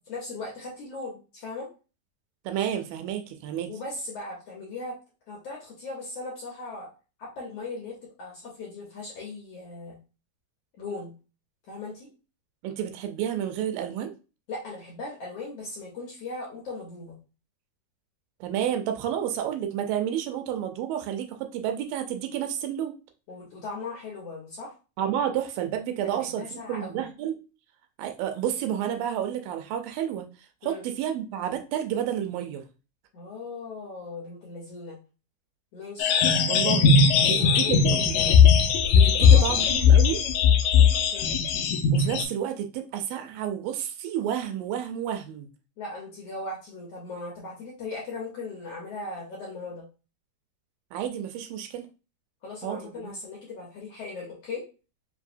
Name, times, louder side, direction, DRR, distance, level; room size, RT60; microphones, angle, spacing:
voice 1, 0.1-1.7 3.7-5.0 5.3-6.9 7.2-10.0 10.8-11.1 11.7-12.1 14.5-17.2 23.3-24.7 26.0-27.0 30.6-30.8 33.1-35.0 35.7-36.2 37.2-38.4 39.2-39.7 41.1-41.3 45.8-49.8 52.4-54.6, left 3 dB, 65° left, -3 dB, 1.6 m, -38 dB
voice 2, 2.5-3.7 12.6-14.1 18.4-22.9 25.0-27.4 28.0-30.3 30.6-32.6 36.5-36.9 37.3-38.2 38.9-40.2 41.9-45.5 50.9-51.9 52.6-53.1, right 10 dB, 85° right, 6 dB, 2.4 m, -30 dB
sound 1, 36.0-42.2, left 6 dB, 80° left, 2.0 m, -19 dB
5.5 x 2.7 x 2.5 m, 0.32 s
omnidirectional pair, 3.9 m